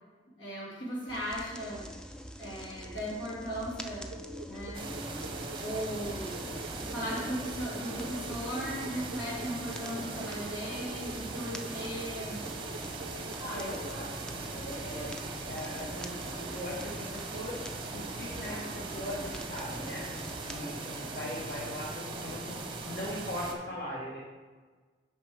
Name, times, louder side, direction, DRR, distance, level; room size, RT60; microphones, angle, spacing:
voice 1, 0.4-1.9 2.4-4.1 4.5-5.0 5.6-6.3 6.8-12.4, equal, 85° left, -5 dB, 2.4 m, -37 dB
sound 1, 1.1-20.6, equal, 5° left, 0.3 m, -46 dB
sound 2, 4.1-13.9, right 1 dB, 70° right, 0.4 m, -46 dB
sound 3, 4.7-23.5, right 3 dB, 25° right, 0.8 m, -40 dB
voice 2, 13.2-20.1 20.4-24.2, equal, 55° left, -6 dB, 1.5 m, -40 dB
9.6 x 5.2 x 3.5 m, 1.4 s
head